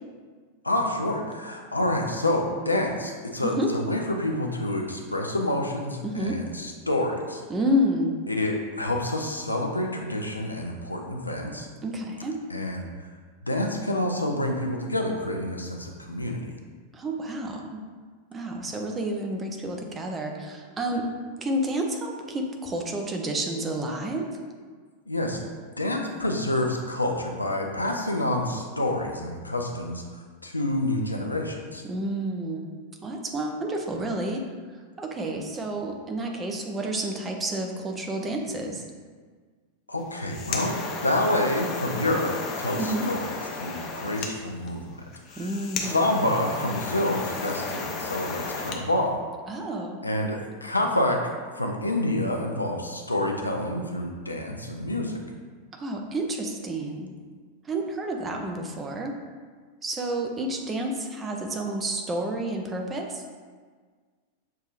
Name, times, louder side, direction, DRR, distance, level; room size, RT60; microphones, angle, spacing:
voice 1, 0.6-7.4 8.3-11.7 12.5-12.9 13.4-16.5 25.1-25.4 25.8-30.0 30.4-31.8 39.9-44.8 45.3-49.2 50.0-51.2 51.6-55.2, left 1 dB, 85° left, 1 dB, 0.5 m, -28 dB
voice 2, 6.0-6.4 7.5-8.3 11.8-12.4 16.9-17.8 18.3-21.1 21.4-24.3 31.8-32.7 33.0-34.4 34.7-38.8 42.7-43.1 45.4-46.0 49.5-50.0 55.7-57.1 57.6-59.2 59.8-63.2, right 1 dB, 20° right, 2 dB, 0.5 m, -30 dB
sound 1, 40.0-48.8, left 4 dB, 35° left, 0.5 m, -34 dB
6.5 x 2.7 x 2.5 m, 1.6 s
figure-of-eight pair, 90°, 0 cm